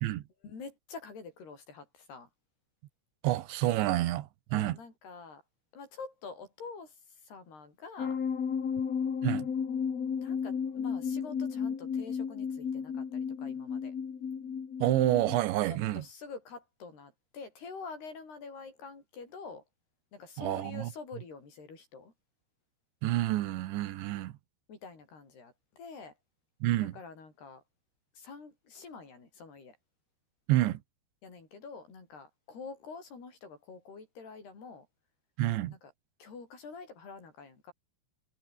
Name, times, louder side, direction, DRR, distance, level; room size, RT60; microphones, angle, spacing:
voice 1, 0.4-2.3 4.5-5.4 5.7-7.0 7.2-8.2 10.2-14.0 15.7-19.6 20.1-22.1 24.7-26.2 26.8-27.6 28.2-29.8 31.2-34.9 35.7-35.9 36.2-37.7, left 4 dB, 60° left, 8.9 m, -47 dB
voice 2, 3.2-4.8 9.2-9.5 14.8-16.0 20.4-20.9 23.0-24.3 26.6-26.9 30.5-30.8 35.4-35.7, right 15 dB, 85° right, 3.5 m, -28 dB
sound 1, 8.0-15.4, left 6 dB, 40° left, 3.3 m, -33 dB
omnidirectional pair, 5.2 m